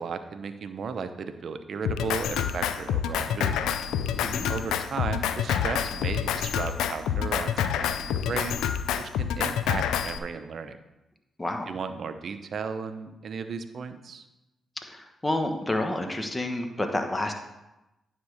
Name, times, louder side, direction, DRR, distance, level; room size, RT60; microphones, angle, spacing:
voice 1, 0.0-3.6 4.5-8.6 9.0-10.8 11.7-14.2, right 5 dB, 60° right, 10 dB, 0.7 m, -35 dB
Drum kit, 1.8-10.2, left 8 dB, 80° left, 0.4 m, -28 dB
voice 2, 11.4-11.7 14.9-17.3, left 1 dB, 20° left, 4 dB, 1.4 m, -29 dB
9.6 x 3.7 x 6.4 m, 0.97 s
hypercardioid pair, 45°, 0 cm